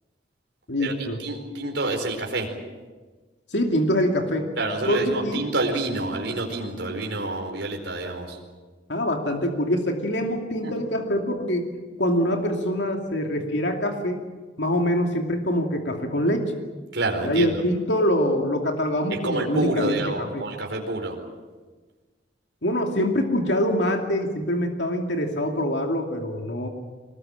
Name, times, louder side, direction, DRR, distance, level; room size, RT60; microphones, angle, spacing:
voice 1, 0.7-1.2 3.5-4.5 4.9-5.4 8.9-11.7 12.0-14.2 14.6-16.5 17.2-20.0 20.3-20.4 22.6-26.7, equal, 75° left, 3 dB, 2.6 m, -24 dB
voice 2, 1.2-2.5 4.6-8.4 10.6-10.7 16.9-17.5 19.1-21.2, right 2 dB, 75° right, 1 dB, 4.6 m, -28 dB
24.0 x 20.5 x 9.0 m, 1.3 s
head